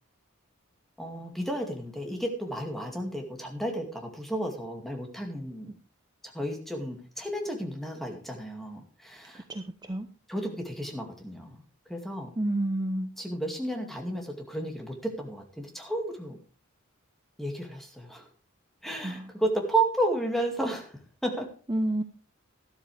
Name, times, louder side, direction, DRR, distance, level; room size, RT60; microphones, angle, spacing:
voice 1, 1.0-5.7 6.2-9.4 10.3-11.6 11.9-12.3 13.2-16.4 17.4-18.3 18.8-21.5, right 1 dB, ahead, 2 dB, 2.3 m, -32 dB
voice 2, 9.5-10.1 12.4-13.1 19.0-19.3 21.7-22.0, right 1 dB, 20° right, 7 dB, 0.7 m, -29 dB
12.5 x 12.5 x 3.4 m, 0.38 s
head